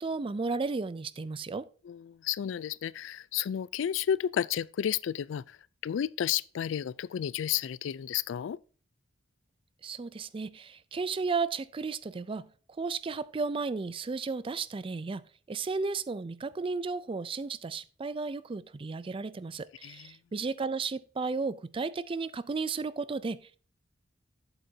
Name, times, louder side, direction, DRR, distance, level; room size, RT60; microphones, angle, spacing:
voice 1, 0.0-1.7 9.8-12.5 12.8-15.2 15.5-23.6, right 4 dB, 30° right, 0.4 m, -34 dB
voice 2, 1.8-5.6 5.8-8.6 19.8-20.1, left 9 dB, 70° left, 0.3 m, -32 dB
8.0 x 7.8 x 2.7 m
head